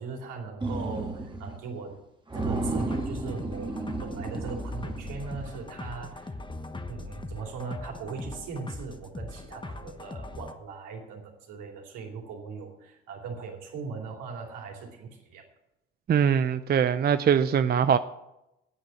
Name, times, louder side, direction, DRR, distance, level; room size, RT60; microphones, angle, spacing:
voice 1, 0.0-2.0 2.3-3.7 4.0-6.4 6.9-15.5, right 4 dB, 65° right, 3.0 m, -39 dB
sound 1, 0.6-1.6 1.9-2.0 2.3-5.7, right 2 dB, 15° right, 1.9 m, -33 dB
sound 2, 2.3-10.5, left 2 dB, 15° left, 1.1 m, -40 dB
voice 2, 16.1-18.0, right 8 dB, 30° right, 0.5 m, -22 dB
9.4 x 8.9 x 7.1 m
hypercardioid pair, 55°, 33 cm